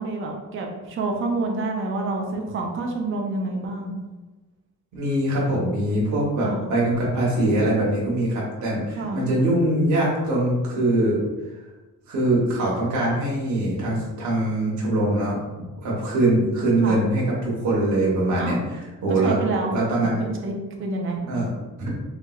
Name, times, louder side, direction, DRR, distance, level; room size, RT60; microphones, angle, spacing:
voice 1, 0.0-4.0 6.4-6.7 9.0-9.3 16.8-17.0 18.4-18.6 19.1-19.8 20.2-20.5 20.8-21.2, right 3 dB, 40° right, 1 dB, 0.5 m, -28 dB
voice 2, 4.9-11.2 12.1-18.6 19.0-19.4 19.7-20.2 21.2-21.5 21.8-21.9, right 1 dB, 65° right, -5 dB, 1.0 m, -23 dB
3.2 x 3.0 x 2.3 m, 1.2 s
cardioid pair, 150°, 31 cm